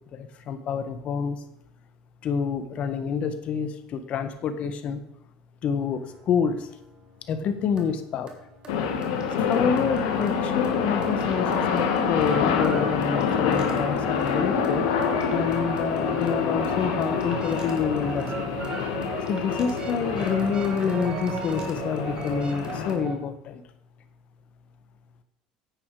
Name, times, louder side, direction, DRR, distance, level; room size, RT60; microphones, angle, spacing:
voice 1, 0.1-1.4 2.2-5.0 5.6-6.7 7.3-8.3 9.3-14.8 15.3-18.5 19.3-23.6, left 6 dB, 50° left, 9 dB, 1.4 m, -28 dB
sound 1, 5.9-23.3, right 4 dB, 35° right, 2.4 m, -38 dB
sound 2, 8.7-23.0, left 6 dB, 80° left, 1.8 m, -27 dB
9.8 x 8.9 x 4.9 m, 0.79 s
supercardioid pair, 90°, 3 cm